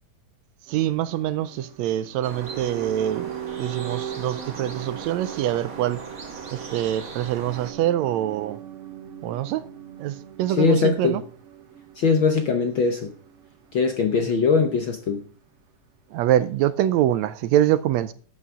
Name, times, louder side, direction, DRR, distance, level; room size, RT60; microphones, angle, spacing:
sound 1, 0.7-14.7 15.0-15.1, right 11 dB, 65° right, 2.4 m, -40 dB
voice 1, 0.7-3.3 3.6-6.0 6.5-8.6 9.2-9.6 10.0-11.2 16.1-18.1, right 12 dB, 80° right, 1.7 m, -24 dB
sound 2, 2.2-7.7, right 4 dB, 35° right, 1.6 m, -39 dB
voice 2, 10.5-11.2 11.9-13.1 13.7-15.2, left 5 dB, 65° left, 1.3 m, -21 dB
12.5 x 8.7 x 3.6 m
omnidirectional pair, 3.4 m